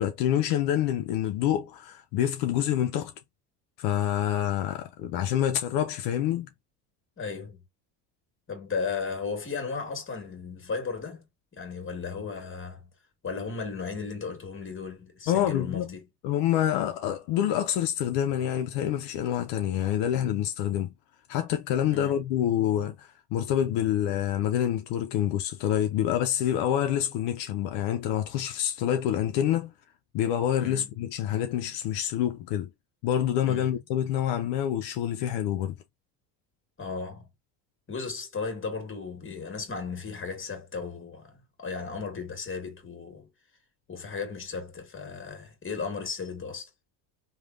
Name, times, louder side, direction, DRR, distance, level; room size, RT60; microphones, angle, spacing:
voice 1, 0.0-3.1 3.8-6.5 15.3-15.9 16.2-20.9 21.3-29.7 30.1-32.7 33.0-35.8, left 11 dB, 75° left, 0.6 m, -27 dB
voice 2, 7.2-7.6 8.5-11.3 11.5-12.9 13.2-16.0 21.9-22.2 30.6-30.9 33.4-33.8 36.8-37.3 37.9-43.3 43.9-46.7, left 5 dB, 30° left, 1.6 m, -35 dB
3.2 x 2.3 x 2.4 m
supercardioid pair, 90°, 43 cm